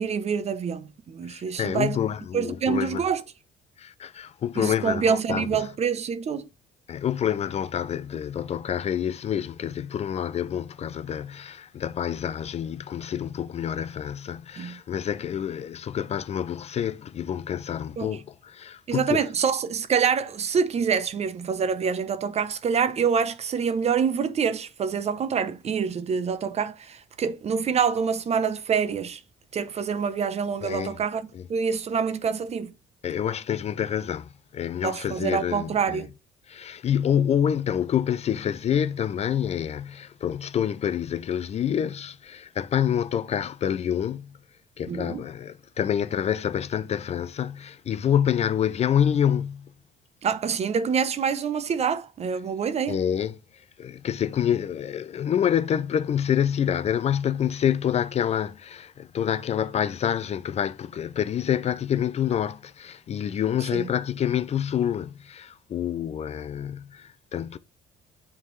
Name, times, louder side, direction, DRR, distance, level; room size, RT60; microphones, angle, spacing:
voice 1, 0.0-2.0 2.3-3.2 4.6-6.5 14.6-14.8 18.0-18.2 18.9-29.2 29.5-31.2 31.5-32.7 34.8-36.1 44.9-45.2 50.2-53.0 63.7-63.9, right 6 dB, 40° right, 0.7 m, -26 dB
voice 2, 1.2-3.1 3.8-5.7 6.9-19.2 30.6-31.0 31.3-31.5 33.0-36.0 36.5-44.4 44.8-49.7 52.9-67.6, left 9 dB, 40° left, 0.4 m, -27 dB
9.1 x 3.6 x 3.2 m
cardioid pair, 110°, 17 cm